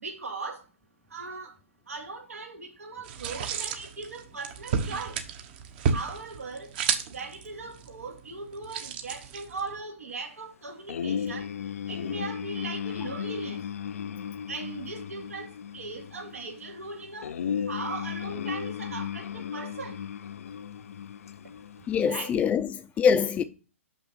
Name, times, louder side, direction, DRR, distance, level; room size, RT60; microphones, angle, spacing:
voice 1, 0.0-0.6 1.1-1.5 1.9-5.2 5.9-6.7 7.1-11.5 11.9-13.6 14.5-17.3 17.7-20.0 22.1-22.3, right 3 dB, 85° right, 2.5 m, -39 dB
sound 1, 3.0-9.8, right 6 dB, 45° right, 1.1 m, -33 dB
sound 2, 10.9-22.1, left 8 dB, 75° left, 0.5 m, -35 dB
voice 2, 21.9-23.4, left 7 dB, 15° left, 0.5 m, -24 dB
6.1 x 6.0 x 5.4 m
hypercardioid pair, 135°, 8 cm